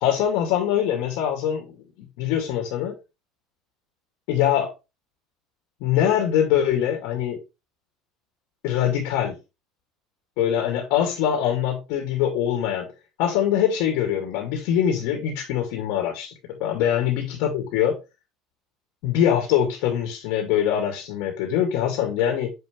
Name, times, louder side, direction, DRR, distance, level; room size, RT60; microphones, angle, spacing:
voice 1, 0.0-1.8 2.2-2.9 4.3-4.7 5.8-7.4 8.6-9.4 10.4-12.9 13.2-18.0 19.0-22.5, left 10 dB, 70° left, 3 dB, 2.4 m, -23 dB
7.6 x 5.7 x 3.3 m, 0.26 s
supercardioid pair, 110°, 0 cm